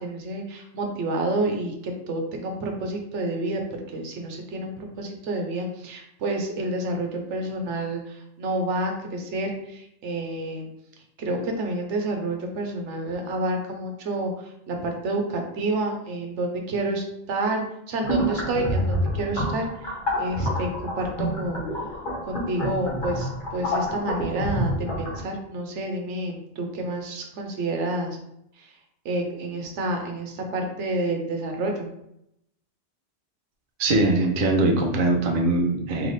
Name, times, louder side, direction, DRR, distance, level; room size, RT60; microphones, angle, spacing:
voice 1, 0.0-3.6 3.9-10.7 11.2-19.9 20.2-21.6 22.2-28.2 28.6-28.8 29.0-31.9, right 2 dB, 85° right, 3 dB, 1.1 m, -29 dB
sound 1, 18.0-25.2, equal, 50° left, 1.1 m, -28 dB
voice 2, 33.8-36.1, right 2 dB, 55° right, 1 dB, 0.8 m, -21 dB
3.3 x 2.9 x 4.0 m, 0.78 s
omnidirectional pair, 1.2 m